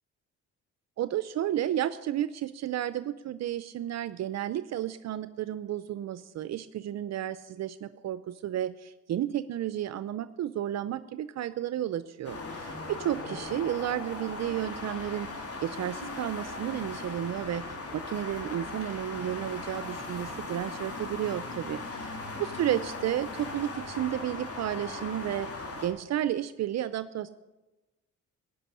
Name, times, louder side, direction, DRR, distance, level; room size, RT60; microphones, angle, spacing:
voice 1, 1.0-15.3 15.6-25.5 25.8-27.3, right 11 dB, 60° right, 14 dB, 0.6 m, -32 dB
sound 1, 12.2-25.9, left 3 dB, 50° left, 3.3 m, -38 dB
16.5 x 6.1 x 9.7 m, 1.1 s
cardioid pair, 90°, 30 cm